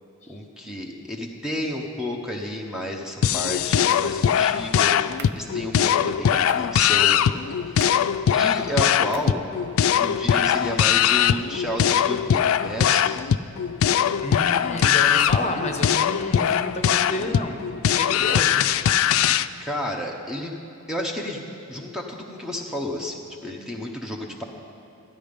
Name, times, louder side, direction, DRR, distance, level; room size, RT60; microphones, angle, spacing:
voice 1, 0.3-7.3 7.7-7.8 8.3-9.4 10.0-13.1 19.6-20.6 20.9-21.4 21.7-24.4, left 1 dB, 5° right, 0 dB, 0.8 m, -31 dB
sound 1, 3.2-19.5, left 9 dB, 70° left, 0.3 m, -21 dB
sound 2, 3.9-4.2 5.2-5.5 6.5-6.7 7.8-8.1 9.1-9.4, right 7 dB, 55° right, 0.5 m, -42 dB
voice 2, 14.2-17.6 18.0-18.6, left 2 dB, 35° left, 4 dB, 0.9 m, -30 dB
13.0 x 11.0 x 5.2 m, 2.9 s
head